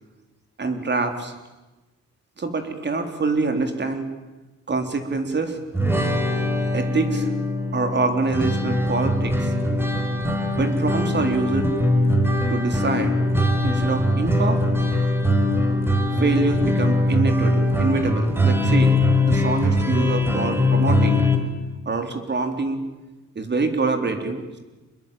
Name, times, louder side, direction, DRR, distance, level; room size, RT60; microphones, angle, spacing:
voice 1, 0.6-1.3 2.4-4.1 4.7-5.6 6.7-7.3 7.7-9.5 10.5-11.7 12.5-13.2 13.6-14.6 16.2-18.9 19.2-21.2 21.9-22.8 23.4-24.6, right 3 dB, 35° right, 6 dB, 3.9 m, -25 dB
sound 1, 5.7-21.4, left 1 dB, 10° right, 4.5 m, -21 dB
25.5 x 21.0 x 9.1 m, 1.1 s
cardioid pair, 90°, 30 cm